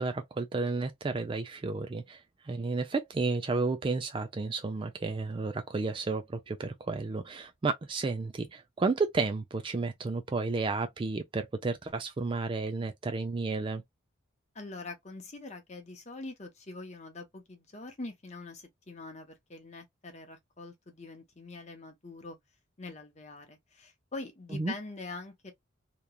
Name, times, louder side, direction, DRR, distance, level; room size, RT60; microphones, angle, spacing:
voice 1, 0.0-2.2 2.4-13.8 24.5-24.7, right 3 dB, 25° right, 0.3 m, -32 dB
voice 2, 14.5-22.4 22.8-25.5, left 3 dB, 35° left, 0.9 m, -44 dB
3.0 x 2.3 x 2.2 m
head